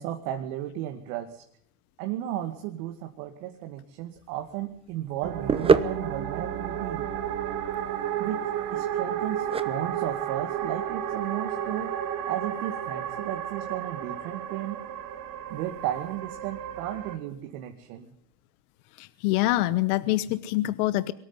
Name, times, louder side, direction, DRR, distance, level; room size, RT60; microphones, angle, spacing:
voice 1, 0.0-1.4 2.0-7.1 8.2-8.4 8.7-11.9 12.3-14.8 15.5-18.1, right 12 dB, 60° right, 5 dB, 2.4 m, -34 dB
sound 1, 4.2-12.1, right 5 dB, 10° right, 1.0 m, -30 dB
sound 2, 5.2-17.2, right 9 dB, 40° right, 2.6 m, -32 dB
voice 2, 19.0-21.1, left 16 dB, 60° left, 15 dB, 1.1 m, -25 dB
23.5 x 13.5 x 9.9 m, 0.68 s
supercardioid pair, 125°, 49 cm